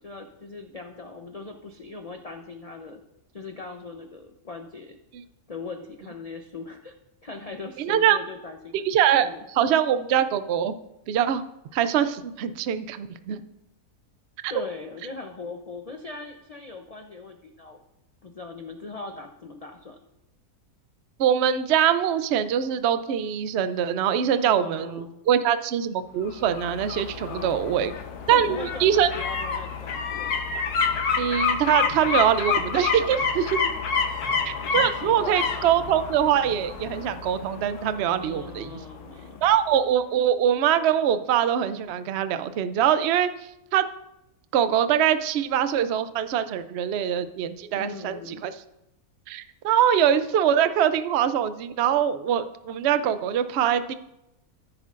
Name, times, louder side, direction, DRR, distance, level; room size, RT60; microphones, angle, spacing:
voice 1, 0.0-3.0 3.3-5.0 5.5-6.9 7.2-8.9 9.2-9.4 14.5-17.8 18.2-20.0 24.4-25.1 27.2-28.0 28.3-30.3 33.4-33.8 34.3-35.5 38.2-39.4 47.7-48.4, left 3 dB, 40° left, 4 dB, 0.5 m, -40 dB
voice 2, 7.8-8.2 8.8-10.7 11.1-11.4 11.7-13.4 21.2-27.9 28.3-29.1 31.2-33.6 34.4-38.7 39.4-43.3 43.7-43.9 44.5-48.5 49.3-53.9, right 9 dB, 75° right, 11 dB, 0.6 m, -23 dB
sound 1, 26.2-39.1 39.4-39.5, left 5 dB, 80° left, 1.5 m, -29 dB
14.0 x 7.8 x 2.5 m, 0.87 s
omnidirectional pair, 1.6 m